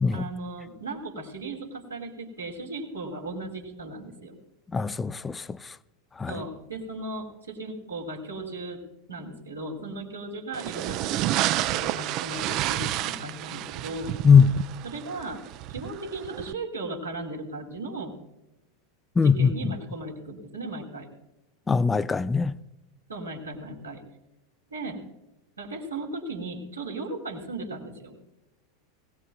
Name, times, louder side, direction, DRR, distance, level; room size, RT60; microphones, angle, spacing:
voice 1, 0.1-4.4 6.3-8.8 9.1-11.1 11.7-14.2 14.8-15.4 15.7-18.2 19.2-21.1 23.1-24.0 24.7-25.0 25.6-28.1, right 2 dB, 80° right, 2.6 m, -36 dB
voice 2, 4.7-5.4 6.2-6.3 14.2-14.5 19.2-19.5 21.7-22.6, left 6 dB, 15° left, 0.4 m, -20 dB
sound 1, 10.5-16.5, right 14 dB, 45° right, 0.4 m, -30 dB
20.0 x 17.5 x 2.3 m
figure-of-eight pair, 90°, 0 cm